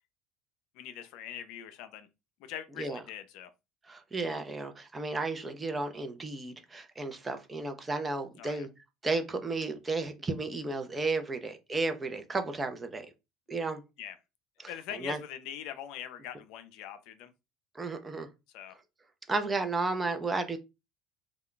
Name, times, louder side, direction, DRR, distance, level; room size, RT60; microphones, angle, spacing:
voice 1, 0.7-2.1 2.4-3.5 8.4-8.7 14.0-14.2 14.6-17.3 18.5-18.8, left 10 dB, 70° left, 0.4 m, -42 dB
voice 2, 3.8-8.7 9.0-13.1 13.5-13.8 14.6-15.2 17.7-18.3 19.3-20.6, right 3 dB, 20° right, 0.6 m, -33 dB
2.3 x 2.2 x 3.7 m
supercardioid pair, 95°, 0 cm